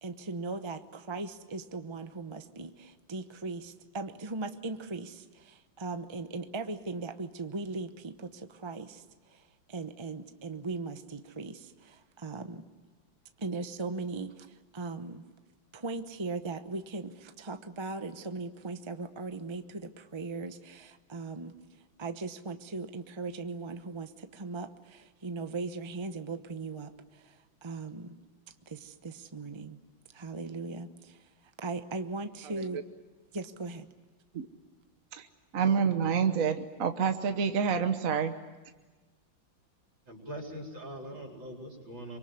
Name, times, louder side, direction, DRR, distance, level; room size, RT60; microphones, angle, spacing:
voice 1, 0.0-12.6 13.4-15.2 15.7-28.2 28.7-29.8 30.1-31.3 31.6-32.8 33.3-33.9, right 3 dB, 25° right, 8 dB, 0.6 m, -39 dB
voice 2, 35.5-38.3, right 6 dB, 50° right, 7 dB, 1.3 m, -27 dB
voice 3, 40.1-42.2, equal, 65° right, 1 dB, 5.1 m, -42 dB
25.0 x 23.5 x 9.6 m, 1.3 s
omnidirectional pair, 2.2 m